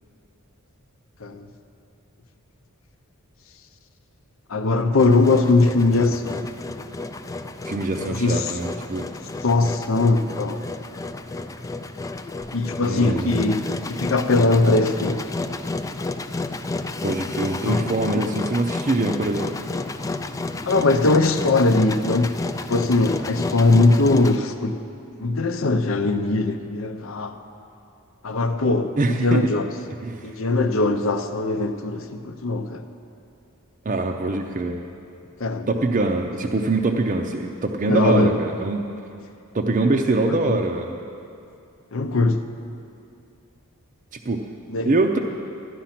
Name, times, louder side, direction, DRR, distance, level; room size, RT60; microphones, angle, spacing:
voice 1, 4.5-6.4 8.1-8.5 9.4-10.6 12.5-15.2 17.6-17.8 20.6-22.3 22.7-24.8 25.2-27.4 28.2-29.7 30.2-32.8 35.4-35.7 37.8-38.4 40.3-40.6 41.9-42.4 44.7-44.9, left 3 dB, 65° left, 8 dB, 0.7 m, -20 dB
Engine, 5.0-24.4, left 2 dB, 15° left, 0.3 m, -31 dB
voice 2, 7.6-9.1 12.8-13.5 17.0-19.5 29.0-29.5 30.0-30.3 33.8-34.8 35.7-38.8 39.5-41.0 44.2-44.4 44.8-45.2, right 2 dB, 35° right, 2 dB, 0.5 m, -23 dB
13.5 x 10.0 x 5.9 m, 2.5 s
head